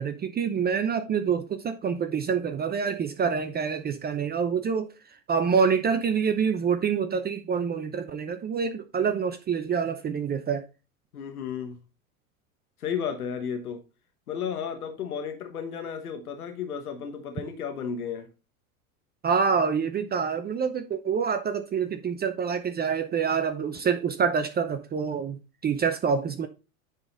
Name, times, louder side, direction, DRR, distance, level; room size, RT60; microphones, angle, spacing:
voice 1, 0.0-10.6 19.2-26.5, right 6 dB, 20° right, 0.7 m, -26 dB
voice 2, 11.1-11.8 12.8-13.8 14.3-18.3, left 7 dB, 90° left, 1.3 m, -33 dB
9.8 x 4.0 x 3.8 m
hypercardioid pair, 95°, 43 cm